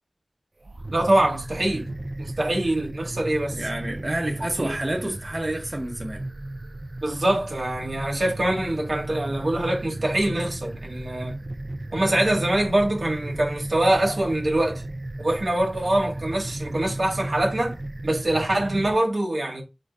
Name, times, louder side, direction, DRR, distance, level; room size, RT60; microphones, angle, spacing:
sound 1, 0.6-19.0, right 1 dB, 65° right, 0.4 m, -35 dB
voice 1, 0.9-1.9 2.2-3.6 4.6-4.8 7.0-11.4 11.9-14.8 15.2-17.7 18.0-19.6, right 1 dB, 85° right, 1.0 m, -24 dB
voice 2, 3.5-6.2, right 1 dB, 40° right, 0.8 m, -29 dB
3.8 x 2.2 x 3.6 m
wide cardioid pair, 45°, 0 cm